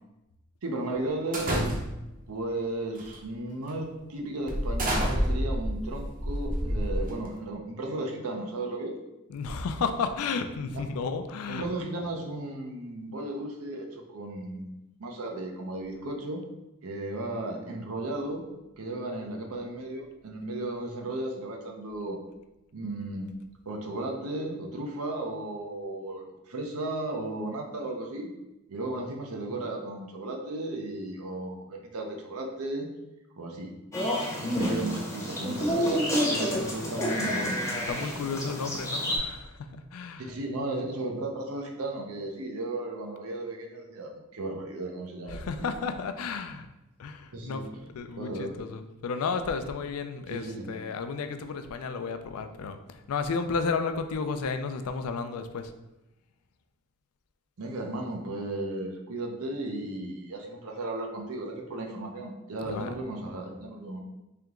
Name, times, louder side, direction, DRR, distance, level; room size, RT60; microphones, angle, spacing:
voice 1, 0.6-1.6 2.3-8.9 11.5-16.4 16.8-18.4 18.8-22.2 22.7-23.3 23.7-28.3 28.7-32.9 33.4-33.7 34.6-38.4 40.2-45.7 47.3-47.6 48.2-48.6 50.3-50.8 57.6-64.0, right 2 dB, 85° right, 2 dB, 0.7 m, -35 dB
sound 1, 1.3-2.2 3.0-3.2 3.7-3.8 4.5-7.4, equal, 40° right, 0.7 m, -29 dB
voice 2, 9.3-11.7 34.5-34.7 35.6-35.7 36.0-36.6 37.9-40.3 45.3-46.7 47.0-55.7 62.6-62.9, left 5 dB, 85° left, 8 dB, 0.4 m, -33 dB
sound 2, 33.9-39.2, equal, 15° left, 0.7 m, -29 dB
3.4 x 2.9 x 3.6 m, 0.97 s
head